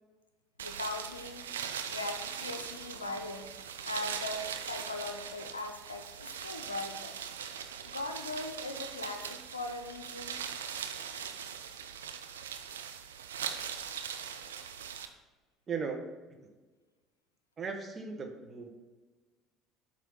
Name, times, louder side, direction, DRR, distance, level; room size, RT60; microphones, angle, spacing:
voice 1, 0.6-1.5 1.8-3.5 3.8-7.2 7.8-10.4, left 2 dB, 85° left, 6 dB, 0.5 m, -39 dB
sound 1, 0.6-15.1, right 7 dB, 75° right, 0.3 m, -41 dB
voice 2, 15.7-16.0 16.4-16.5 17.6-18.7, right 5 dB, 30° right, 4 dB, 0.9 m, -37 dB
7.6 x 2.7 x 5.2 m, 1.3 s
figure-of-eight pair, 60°, 0 cm